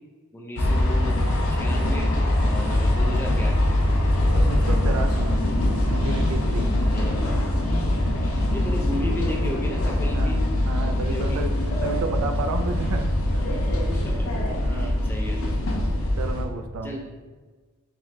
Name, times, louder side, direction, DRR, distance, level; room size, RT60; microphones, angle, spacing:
voice 1, 0.3-1.2 1.5-3.6 6.9-10.4 10.8-11.4 11.7-11.9 13.9-14.3 14.7-15.7 16.8-17.0, left 1 dB, 10° left, 0 dB, 0.4 m, -35 dB
sound 1, 0.6-16.5, left 1 dB, 70° left, 0.6 m, -23 dB
voice 2, 4.3-5.3 5.9-6.7 10.1-11.5 11.8-13.5 14.6-15.0 16.2-17.0, right 3 dB, 80° right, 7 dB, 0.4 m, -32 dB
3.3 x 3.1 x 3.6 m, 1.4 s
head